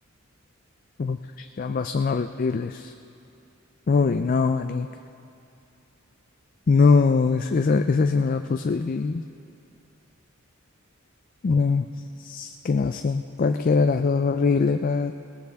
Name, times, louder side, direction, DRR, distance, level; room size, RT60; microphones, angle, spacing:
voice 1, 1.0-2.9 3.9-4.9 6.7-9.2 11.4-11.9 12.2-15.1, left 4 dB, 40° left, 7 dB, 0.3 m, -22 dB
21.0 x 18.5 x 3.5 m, 2.7 s
head